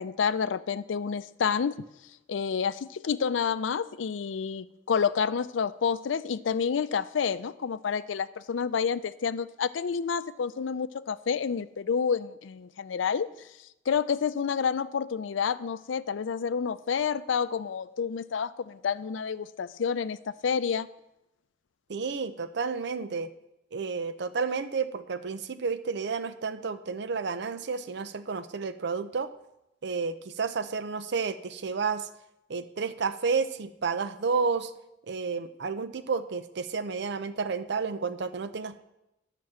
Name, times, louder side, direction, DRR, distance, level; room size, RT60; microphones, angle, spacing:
voice 1, 0.0-1.8 2.3-13.3 13.9-20.9, left 6 dB, 80° left, 15 dB, 0.4 m, -29 dB
voice 2, 21.9-23.3 23.7-29.3 29.8-32.1 32.5-34.7 35.1-38.8, right 5 dB, 65° right, 12 dB, 0.6 m, -31 dB
10.5 x 6.1 x 7.4 m, 0.89 s
head